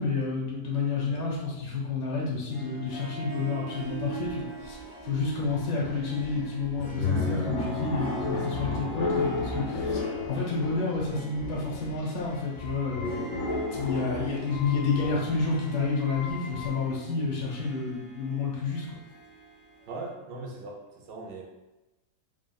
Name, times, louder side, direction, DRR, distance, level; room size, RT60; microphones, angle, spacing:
voice 1, 0.0-13.3 13.7-19.0, left 4 dB, 85° left, -3 dB, 1.5 m, -30 dB
Harp, 2.5-20.1, right 7 dB, 40° left, 0.5 m, -44 dB
sound 1, 4.2-17.0, left 3 dB, 70° left, 0.8 m, -33 dB
voice 2, 19.9-21.4, right 3 dB, 90° right, -1 dB, 1.3 m, -39 dB
3.5 x 2.0 x 2.3 m, 1.0 s
omnidirectional pair, 1.9 m